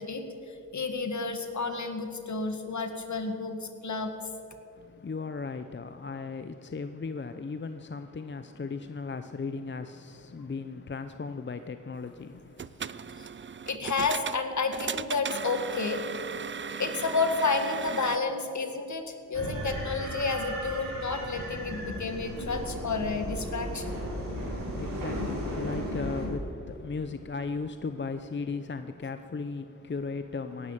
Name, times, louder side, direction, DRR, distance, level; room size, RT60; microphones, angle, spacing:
voice 1, 0.0-4.1 13.2-13.3 13.7-16.0 16.8-24.0, left 4 dB, 60° left, 1.8 m, -31 dB
voice 2, 4.7-13.2 24.3-30.7, left 4 dB, 35° left, 0.7 m, -37 dB
sound 1, 12.4-18.2, right 6 dB, 35° right, 0.5 m, -37 dB
sound 2, 19.3-26.3, equal, 80° right, 4.7 m, -35 dB
17.5 x 11.0 x 7.3 m
cardioid pair, 50°, 33 cm